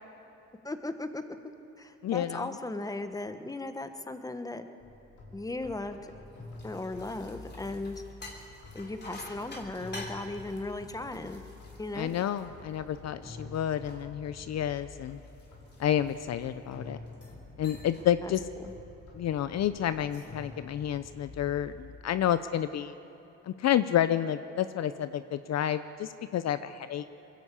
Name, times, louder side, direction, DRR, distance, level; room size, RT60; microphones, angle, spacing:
voice 1, 0.6-1.2 1.8-4.7 5.3-6.1 6.6-8.0 8.7-11.4 11.8-12.1 18.2-18.3 18.6-18.7, left 2 dB, 10° left, 8 dB, 1.2 m, -37 dB
voice 2, 2.0-2.5 11.9-15.2 15.8-17.0 17.6-18.4 19.1-22.9 23.5-27.0, left 10 dB, 60° left, 12 dB, 0.6 m, -30 dB
sound 1, 4.8-22.0, left 3 dB, 85° left, 5.4 m, -48 dB
sound 2, 6.3-13.1 13.5-16.6 17.1-17.4 17.6-18.1 18.5-18.7 19.9-20.4, left 2 dB, 35° left, 3.3 m, -49 dB
21.5 x 14.5 x 8.5 m, 2.9 s
cardioid pair, 90°, 30 cm